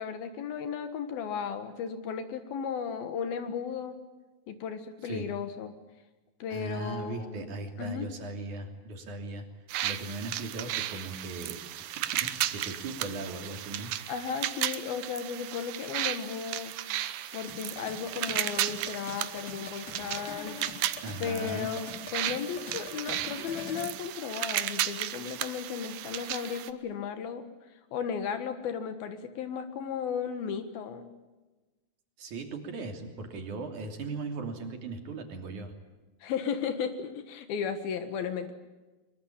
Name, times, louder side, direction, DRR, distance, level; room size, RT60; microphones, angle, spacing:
voice 1, 0.0-4.0 4.5-5.7 6.4-7.5 7.8-8.1 14.1-16.7 17.3-20.6 21.2-27.4 27.9-31.1 36.2-38.5, left 7 dB, 80° left, 9 dB, 3.4 m, -35 dB
voice 2, 6.5-9.5 9.8-13.9 21.0-21.7 32.2-35.7, right 3 dB, 55° right, 5 dB, 4.3 m, -38 dB
sound 1, 9.7-26.7, right 13 dB, 75° right, 2.6 m, -35 dB
sound 2, 17.5-23.9, left 5 dB, 45° left, 4.7 m, -45 dB
23.5 x 23.0 x 8.7 m, 1.2 s
omnidirectional pair, 4.3 m